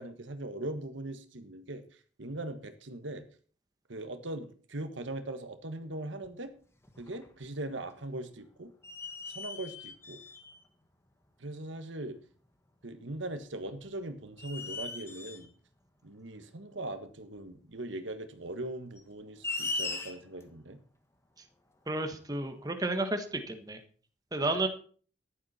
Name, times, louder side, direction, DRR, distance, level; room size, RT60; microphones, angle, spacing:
voice 1, 0.0-3.2 3.9-6.5 7.0-8.7 9.3-10.2 11.4-12.2 12.8-15.5 16.0-20.8 24.4-24.5, right 1 dB, 80° right, 9 dB, 1.5 m, -40 dB
sound 1, 6.2-6.3 6.8-7.6 7.9-8.0 8.8-10.6 11.7-11.8 13.6-13.9 14.4-15.5 17.3-17.4 18.9-20.4, left 3 dB, 15° left, 1.4 m, -39 dB
voice 2, 21.9-23.8 24.3-24.7, right 2 dB, 20° right, 6 dB, 1.5 m, -32 dB
14.0 x 11.0 x 4.4 m, 0.43 s
head